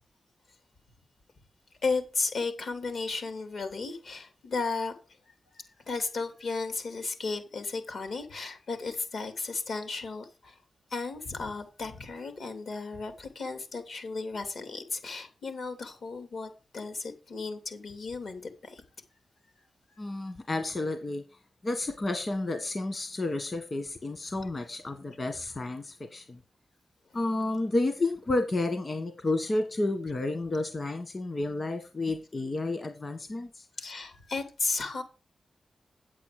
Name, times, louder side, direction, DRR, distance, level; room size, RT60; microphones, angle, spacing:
voice 1, 1.8-4.9 5.3-10.6 10.9-18.8 19.9-20.3 33.8-35.0, left 4 dB, 75° left, 2.8 m, -34 dB
voice 2, 20.0-21.2 21.6-26.4 27.1-33.7, left 2 dB, 45° left, 1.6 m, -31 dB
8.6 x 8.4 x 4.9 m
cardioid pair, 55°, 0 cm